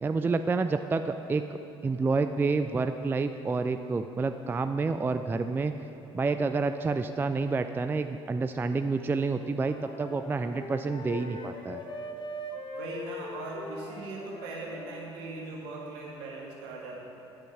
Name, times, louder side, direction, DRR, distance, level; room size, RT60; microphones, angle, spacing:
voice 1, 0.0-1.4 1.8-5.7 6.1-11.8, right 4 dB, 15° right, 8 dB, 0.3 m, -29 dB
Wind instrument woodwind instrument, 9.6-15.1, left 1 dB, 35° left, 1.1 m, -41 dB
voice 2, 12.7-17.0, right 3 dB, 65° right, -3 dB, 2.0 m, -40 dB
10.0 x 6.3 x 6.4 m, 3.0 s
figure-of-eight pair, 55°, 14 cm